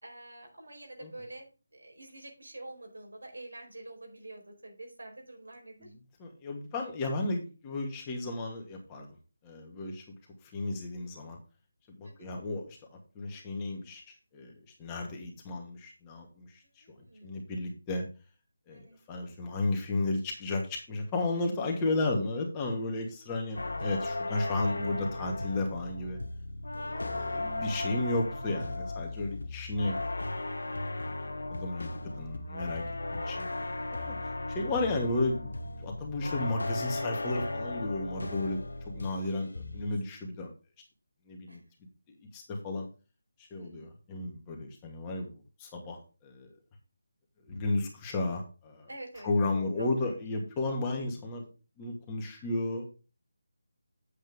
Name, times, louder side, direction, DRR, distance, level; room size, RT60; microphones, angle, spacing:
voice 1, 0.0-5.9 12.0-12.3 16.8-17.3 18.7-19.0 24.0-24.2 27.0-27.3 39.2-39.8 41.5-41.6 43.6-43.9 48.9-49.3 49.5-50.1, right 1 dB, 75° right, 1 dB, 4.7 m, -48 dB
voice 2, 6.2-9.1 9.4-10.0 10.4-11.4 11.9-14.0 14.3-16.8 17.2-18.0 18.7-26.2 26.8-30.0 31.5-32.8 33.1-33.5 33.9-35.5 35.8-40.5 41.3-41.6 42.3-42.8 43.4-45.3 45.6-46.5 47.5-48.9 49.2-51.5 51.8-52.9, left 2 dB, 15° left, 0 dB, 2.3 m, -33 dB
sound 1, 23.6-39.3 39.5-40.0, left 2 dB, 70° left, 1.1 m, -36 dB
8.9 x 8.5 x 3.7 m, 0.33 s
figure-of-eight pair, 155°, 0 cm